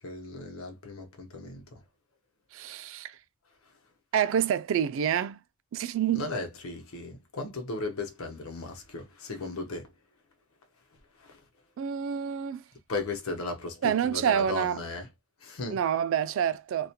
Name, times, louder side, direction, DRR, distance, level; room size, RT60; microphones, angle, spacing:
voice 1, 0.0-1.8 6.1-9.9 11.1-11.4 12.9-15.1 15.4-15.8, left 3 dB, 85° left, 0.8 m, -36 dB
voice 2, 2.5-3.2 4.1-5.4 5.7-6.3 11.8-12.6 13.8-14.8 15.7-16.9, right 8 dB, 65° right, 0.3 m, -27 dB
2.4 x 2.1 x 2.8 m
head